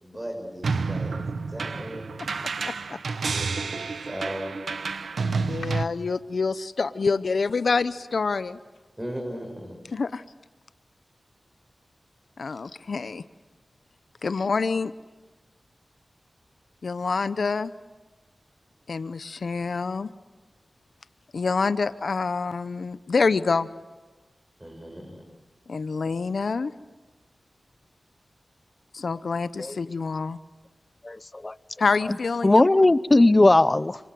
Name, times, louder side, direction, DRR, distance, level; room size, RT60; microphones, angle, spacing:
voice 1, 0.0-2.1 3.2-4.6 9.0-9.8 24.6-25.2, equal, 20° right, 1 dB, 6.6 m, -37 dB
sound 1, 0.6-5.8, right 4 dB, 85° right, 1.0 m, -29 dB
voice 2, 2.2-3.0 5.5-8.6 9.9-10.2 12.4-13.2 14.2-14.9 16.8-17.7 18.9-20.1 21.3-23.7 25.7-26.7 28.9-30.4 31.8-32.7, left 4 dB, 75° left, 14 dB, 0.8 m, -27 dB
voice 3, 31.0-31.5 32.4-34.0, left 2 dB, 35° left, 17 dB, 0.8 m, -18 dB
27.0 x 24.5 x 7.8 m, 1.2 s
cardioid pair, 45°, 0 cm